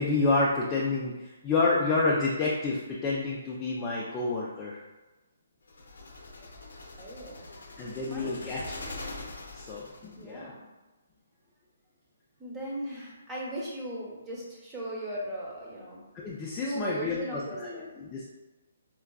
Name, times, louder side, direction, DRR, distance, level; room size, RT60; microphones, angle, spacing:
voice 1, 0.0-4.8 7.8-8.9 9.5-10.5 16.1-18.2, left 3 dB, 20° left, -5 dB, 0.4 m, -29 dB
sound 1, 5.7-10.2, left 2 dB, 85° left, 0.6 m, -43 dB
voice 2, 7.0-7.5 8.1-8.7 10.2-10.7 12.4-16.1 16.6-17.9, right 1 dB, 15° right, -5 dB, 0.8 m, -38 dB
4.5 x 2.3 x 2.3 m, 1.1 s
hypercardioid pair, 155°, 0 cm